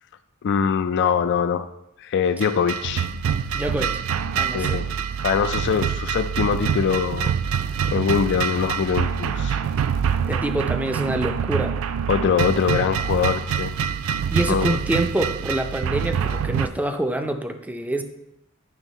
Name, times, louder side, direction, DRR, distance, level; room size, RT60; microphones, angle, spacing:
voice 1, 0.4-1.7 2.0-3.1 4.5-4.9 5.2-7.3 7.9-9.6 12.1-13.7 14.5-14.8, left 6 dB, 55° left, 10 dB, 0.3 m, -23 dB
sound 1, 2.4-16.7, right 7 dB, 70° right, 0.3 m, -25 dB
voice 2, 3.5-4.0 4.3-4.8 10.3-11.7 14.3-18.0, right 1 dB, 5° right, 6 dB, 0.5 m, -26 dB
9.1 x 3.5 x 5.3 m, 0.85 s
head